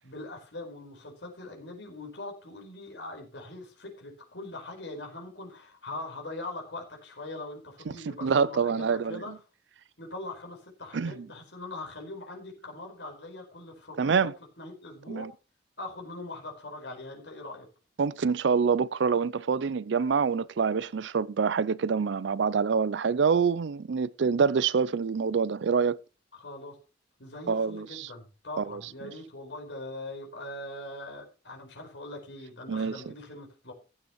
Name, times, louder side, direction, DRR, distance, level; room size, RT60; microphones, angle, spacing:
voice 1, 0.0-9.4 10.0-14.3 14.6-15.3 15.8-17.7 26.3-26.8 27.2-33.7, left 2 dB, 85° left, 4.8 m, -41 dB
voice 2, 7.9-9.3 10.9-11.2 14.0-14.3 15.1-15.3 18.0-26.0 27.5-28.1 28.6-28.8 32.7-33.1, right 5 dB, 80° right, 0.5 m, -26 dB
15.5 x 9.8 x 3.1 m
head